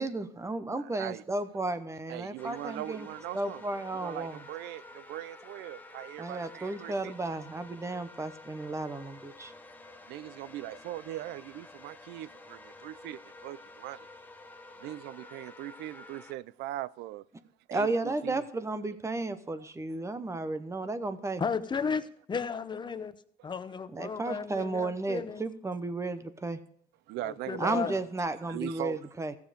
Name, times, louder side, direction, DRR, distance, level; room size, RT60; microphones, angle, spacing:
voice 1, 0.0-3.1 3.3-4.4 6.2-9.5 17.7-21.4 23.9-26.6 27.6-29.4, right 2 dB, 15° right, 0.8 m, -33 dB
voice 2, 0.8-1.2 2.1-3.6 4.0-7.2 10.1-14.1 14.8-17.3 17.7-18.5 23.4-23.5 27.1-27.8 28.5-29.0, right 15 dB, 85° right, 0.4 m, -40 dB
sound 1, 2.4-16.3, left 2 dB, 10° left, 1.0 m, -50 dB
voice 3, 21.4-23.1 23.4-25.4 27.2-28.0, left 5 dB, 25° left, 0.7 m, -34 dB
15.0 x 7.1 x 5.1 m
cardioid pair, 110°, 17 cm